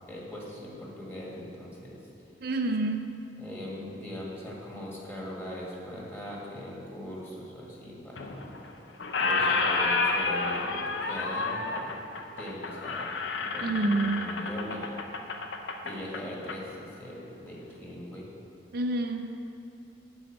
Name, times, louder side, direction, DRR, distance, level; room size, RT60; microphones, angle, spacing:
voice 1, 0.1-2.0 3.4-8.5 9.2-12.1 12.4-15.1 15.8-18.3, left 1 dB, 15° left, -5 dB, 1.8 m, -40 dB
voice 2, 2.4-3.1 13.6-14.3 18.7-19.4, right 2 dB, 60° right, 4 dB, 0.5 m, -28 dB
Squeak, 8.2-8.7 9.0-16.6, left 3 dB, 80° left, 0.7 m, -30 dB
8.1 x 5.6 x 7.5 m, 2.6 s
head